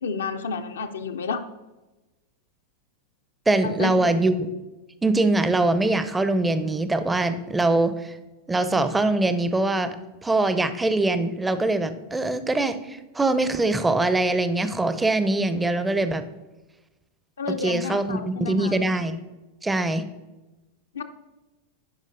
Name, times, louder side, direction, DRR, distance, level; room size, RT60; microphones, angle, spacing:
voice 1, 0.0-1.4 3.6-3.9 17.4-18.8 20.9-21.0, left 4 dB, 65° left, 7 dB, 0.4 m, -30 dB
voice 2, 3.5-4.5 5.0-8.2 8.5-9.9 10.2-16.2 17.6-19.2 19.6-20.0, right 2 dB, 10° right, 11 dB, 0.5 m, -23 dB
10.5 x 5.0 x 2.6 m, 1.1 s
figure-of-eight pair, 90°, 0 cm